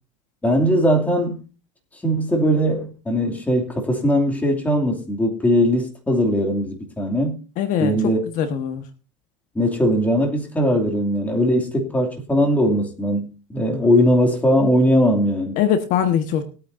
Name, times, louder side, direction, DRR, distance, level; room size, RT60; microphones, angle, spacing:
voice 1, 0.4-1.4 2.0-7.4 7.8-8.2 9.5-15.6, equal, 10° left, 2.7 m, -20 dB
voice 2, 7.6-7.9 8.3-8.8 15.6-16.4, left 9 dB, 50° left, 1.5 m, -21 dB
21.0 x 8.8 x 2.7 m
supercardioid pair, 135°, 17 cm